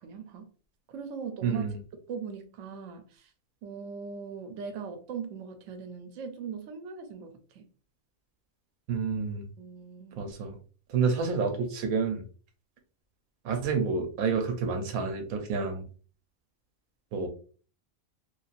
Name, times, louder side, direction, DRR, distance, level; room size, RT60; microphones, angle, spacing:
voice 1, 0.0-0.5 0.9-1.6 2.1-3.3 3.6-7.6 9.6-10.2, right 6 dB, 70° right, 6 dB, 0.9 m, -40 dB
voice 2, 1.4-1.8 8.9-9.5 10.2-10.6 10.9-12.2 13.4-15.8 17.1-17.3, right 5 dB, 90° right, 5 dB, 1.1 m, -29 dB
3.1 x 2.4 x 2.4 m, 0.39 s
omnidirectional pair, 1.4 m